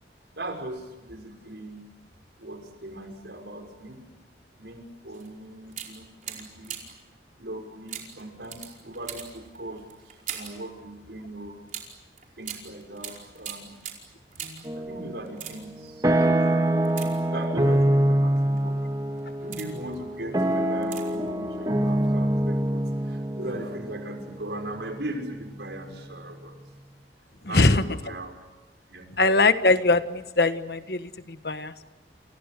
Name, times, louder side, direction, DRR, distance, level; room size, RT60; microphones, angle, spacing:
voice 1, 0.3-1.8 2.4-4.0 4.6-6.8 7.4-11.6 12.4-13.7 14.3-14.4 14.7-16.3 17.2-18.8 19.4-26.6 27.5-28.3 28.9-29.1, right 1 dB, 75° right, 4 dB, 5.9 m, -39 dB
sound 1, 5.1-5.3 5.7-7.1 7.9-10.7 11.7-14.8 15.2-15.9 16.8-17.7 18.4-18.6 19.1-19.9 20.8-21.3 21.5-21.6, right 9 dB, 50° right, 4.9 m, -40 dB
sound 2, 14.6-15.2 15.6-25.6, right 1 dB, 20° right, 1.9 m, -25 dB
voice 2, 27.5-27.8 29.2-31.9, left 3 dB, 60° left, 10 dB, 1.4 m, -22 dB
30.0 x 28.5 x 6.8 m, 1.1 s
head